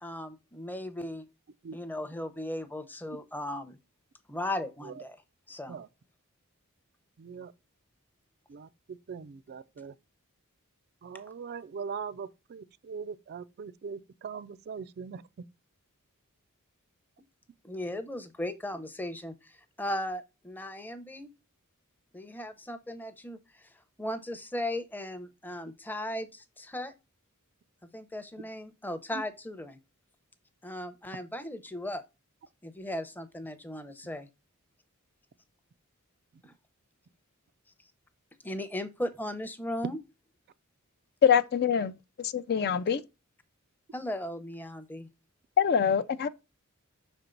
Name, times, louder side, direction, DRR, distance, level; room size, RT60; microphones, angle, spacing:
voice 1, 0.0-1.3 1.7-3.8 4.3-5.2 5.5-5.8 17.6-19.5 19.8-21.3 22.1-23.4 24.0-26.9 27.8-29.8 30.6-32.0 32.6-34.3 36.4-36.5 38.4-40.0 43.9-45.1, left 1 dB, 10° left, 0.6 m, -37 dB
voice 2, 7.2-7.5 8.5-9.9 11.0-15.2, right 6 dB, 45° right, 0.4 m, -41 dB
voice 3, 41.2-43.0 45.6-46.3, left 8 dB, 45° left, 0.4 m, -25 dB
6.0 x 4.4 x 3.8 m
head